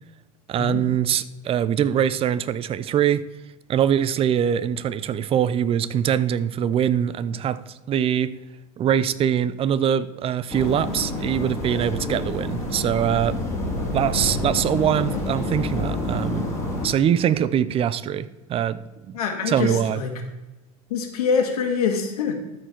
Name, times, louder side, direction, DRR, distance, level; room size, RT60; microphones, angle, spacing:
voice 1, 0.5-3.2 3.7-8.3 8.8-13.4 13.9-16.5 16.8-18.8 19.1-19.2 19.5-20.0, right 9 dB, 30° right, 15 dB, 0.5 m, -23 dB
sound 1, 10.5-16.9, left 2 dB, 15° left, 2.7 m, -28 dB
voice 2, 19.1-20.1 20.9-22.3, left 6 dB, 90° left, 4 dB, 1.8 m, -24 dB
13.0 x 4.7 x 4.5 m, 1.1 s
supercardioid pair, 110°, 19 cm